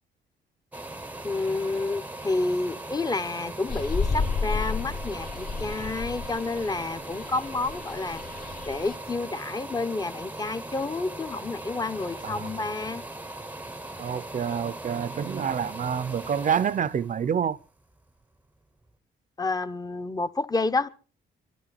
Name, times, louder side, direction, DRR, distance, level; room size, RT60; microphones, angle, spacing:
sound 1, 0.7-18.4 18.9-19.0, right 1 dB, 10° right, 0.8 m, -39 dB
voice 1, 1.2-8.2 8.7-13.0 19.4-20.9, left 3 dB, 20° left, 0.9 m, -29 dB
sound 2, 3.7-9.0, left 4 dB, 45° left, 1.4 m, -32 dB
voice 2, 14.0-17.6, right 8 dB, 40° right, 0.7 m, -27 dB
24.0 x 12.5 x 4.1 m
cardioid pair, 90°, 20 cm